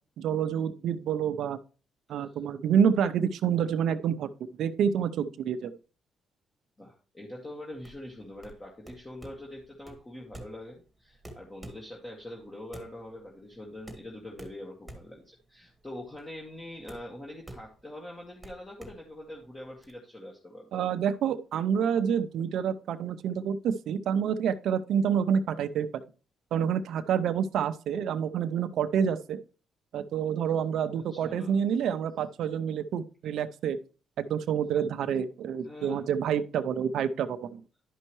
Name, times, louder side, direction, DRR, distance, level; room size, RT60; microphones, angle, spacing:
voice 1, 0.2-1.6 2.1-5.7 20.7-25.9 26.5-29.4 29.9-33.8 34.2-37.6, right 8 dB, 75° right, 10 dB, 0.5 m, -28 dB
voice 2, 6.8-20.8 30.9-31.5 35.6-36.1, left 1 dB, 20° left, -2 dB, 1.8 m, -44 dB
sound 1, 7.7-19.9, right 1 dB, 5° right, 1.8 m, -49 dB
11.0 x 5.4 x 3.1 m, 0.36 s
cardioid pair, 90°, 0 cm